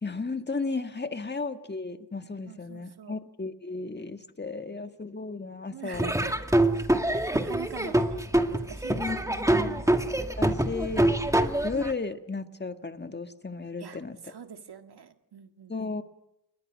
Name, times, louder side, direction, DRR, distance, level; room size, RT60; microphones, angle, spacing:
voice 1, 0.0-6.1 8.9-9.8 10.2-11.2 11.6-14.2 15.7-16.0, left 3 dB, 25° left, 8 dB, 1.7 m, -34 dB
voice 2, 2.4-3.2 5.7-6.6 7.1-9.9 13.8-15.9, right 7 dB, 80° right, 7 dB, 2.0 m, -45 dB
Laughter / Drum, 5.9-11.9, right 1 dB, 10° right, 2.0 m, -25 dB
30.0 x 21.5 x 6.4 m, 0.80 s
wide cardioid pair, 80°, 39 cm